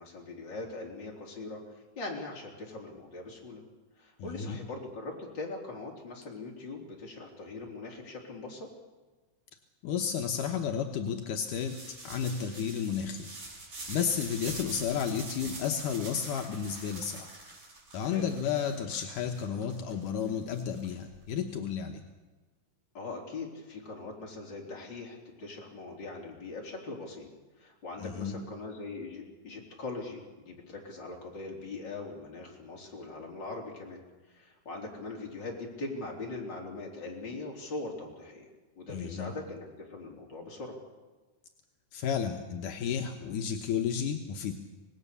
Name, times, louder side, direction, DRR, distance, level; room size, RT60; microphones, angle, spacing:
voice 1, 0.0-1.6 2.0-3.6 4.0-8.7 18.1-18.3 22.9-27.3 27.6-34.0 34.3-38.5 38.8-40.8, left 3 dB, 35° left, -2 dB, 4.5 m, -41 dB
voice 2, 4.2-4.6 9.8-11.8 12.0-13.3 13.9-17.3 17.9-22.0 28.0-28.5 38.9-39.4 41.9-44.5, left 7 dB, 75° left, 3 dB, 2.6 m, -32 dB
sound 1, 11.4-21.3, right 2 dB, 75° right, 7.7 m, -45 dB
26.0 x 19.0 x 6.9 m, 1.2 s
omnidirectional pair, 3.7 m